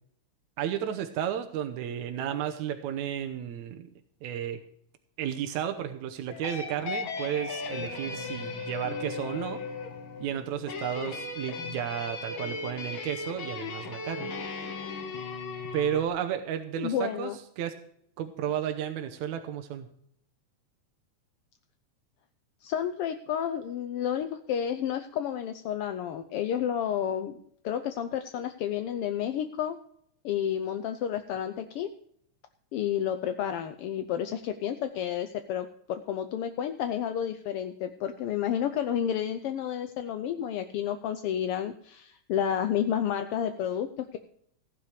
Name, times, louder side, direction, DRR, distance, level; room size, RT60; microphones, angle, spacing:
voice 1, 0.6-3.9 4.2-4.6 5.2-9.6 10.2-14.3 15.7-17.7 18.2-19.9, right 9 dB, 80° right, 6 dB, 2.3 m, -33 dB
sound 1, 6.3-16.1, left 4 dB, 50° left, 2.0 m, -37 dB
voice 2, 16.8-17.4 22.6-27.4 27.6-29.8 30.2-31.9 32.7-44.2, left 9 dB, 80° left, 8 dB, 1.3 m, -31 dB
15.5 x 10.0 x 4.9 m, 0.67 s
omnidirectional pair, 3.3 m